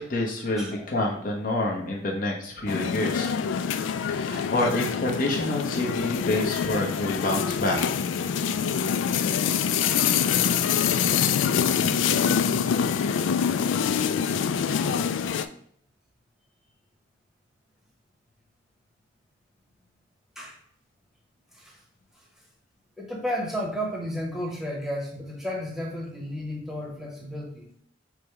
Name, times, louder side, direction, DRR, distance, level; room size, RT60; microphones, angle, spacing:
voice 1, 0.0-3.3 4.1-7.8, left 1 dB, 45° left, -2 dB, 0.9 m, -27 dB
voice 2, 0.6-0.9 4.1-4.5 20.4-20.6 21.5-21.8 23.0-27.7, equal, ahead, -1 dB, 0.9 m, -33 dB
sound 1, 2.7-15.5, left 7 dB, 80° left, 0.3 m, -25 dB
4.8 x 2.2 x 4.7 m, 0.64 s
head